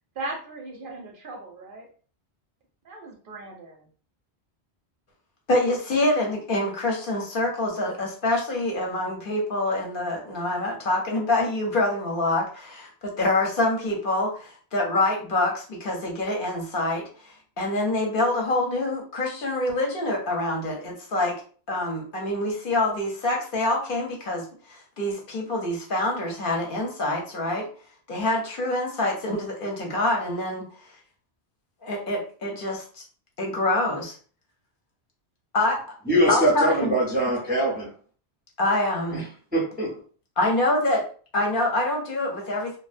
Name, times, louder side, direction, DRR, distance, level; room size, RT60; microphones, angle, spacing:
voice 1, 0.2-1.8 2.8-3.9, right 2 dB, 60° right, 0 dB, 0.6 m, -37 dB
voice 2, 5.5-21.3 21.7-27.7 28.1-30.6 31.8-33.0 33.4-34.1 35.5-35.8 36.3-36.9 38.6-39.2 40.4-41.0 41.3-42.8, left 2 dB, 60° left, 0 dB, 0.7 m, -26 dB
voice 3, 36.1-37.9 39.1-39.3 39.5-40.0, right 1 dB, 15° right, -2 dB, 0.4 m, -23 dB
2.5 x 2.1 x 2.4 m, 0.42 s
omnidirectional pair, 1.1 m